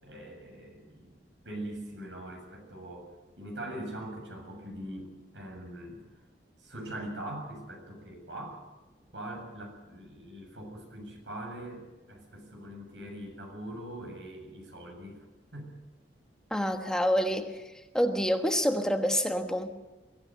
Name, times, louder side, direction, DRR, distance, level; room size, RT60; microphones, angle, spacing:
voice 1, 0.0-1.2 1.4-6.0 6.6-8.7 9.1-15.3 15.5-15.7, right 1 dB, 90° right, 2 dB, 7.6 m, -42 dB
voice 2, 16.5-17.6 17.9-19.7, equal, 5° left, 5 dB, 1.3 m, -27 dB
23.5 x 16.5 x 7.7 m, 1.1 s
head